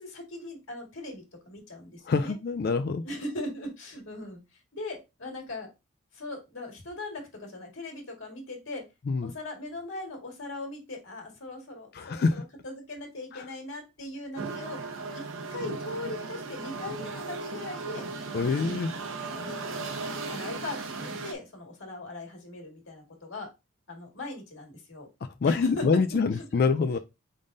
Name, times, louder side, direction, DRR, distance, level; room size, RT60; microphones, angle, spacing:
voice 1, 0.0-2.4 3.0-5.7 6.1-8.8 9.2-12.2 12.6-14.8 15.1-18.4 18.6-19.9 20.3-23.5 23.9-25.1 25.4-25.8 26.6-26.7, left 2 dB, 70° left, 1.8 m, -40 dB
voice 2, 2.0-3.0 9.1-9.3 11.9-12.4 13.3-13.5 18.3-18.9 25.2-27.0, left 4 dB, 50° left, 0.3 m, -26 dB
sound 1, 14.4-21.3, right 3 dB, 75° right, 0.8 m, -36 dB
4.9 x 3.7 x 2.6 m
head